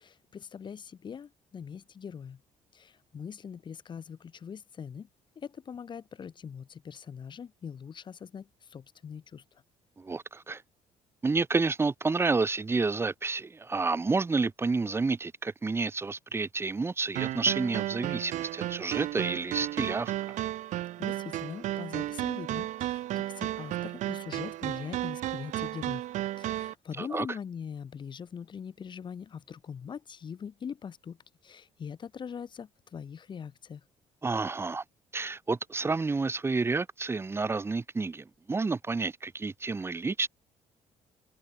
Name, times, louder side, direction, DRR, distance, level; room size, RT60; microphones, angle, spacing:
voice 1, 0.0-2.4 2.7-5.1 5.4-9.6 21.0-26.1 26.4-31.2 31.4-33.8, left 7 dB, 40° left, 2.4 m, -42 dB
voice 2, 10.0-10.6 11.2-20.4 27.0-27.3 34.2-34.8 35.1-40.3, right 3 dB, 20° right, 1.7 m, -30 dB
sound 1, 17.2-26.7, right 14 dB, 75° right, 2.4 m, -33 dB
open air
cardioid pair, 125°, 13 cm